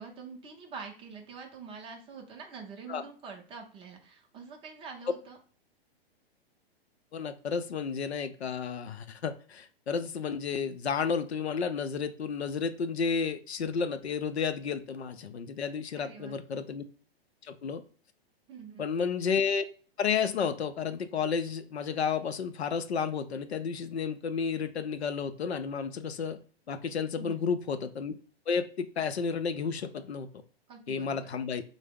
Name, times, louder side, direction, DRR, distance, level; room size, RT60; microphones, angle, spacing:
voice 1, 0.0-5.4 15.9-16.4 18.5-18.9 27.1-27.4 30.7-31.4, right 5 dB, 15° right, 2 dB, 0.5 m, -45 dB
voice 2, 7.1-16.8 17.5-17.8 18.8-19.6 20.0-26.4 26.7-28.1 28.5-30.3 30.9-31.6, left 6 dB, 90° left, 9 dB, 0.5 m, -32 dB
3.4 x 2.0 x 3.4 m, 0.41 s
figure-of-eight pair, 110°, 31 cm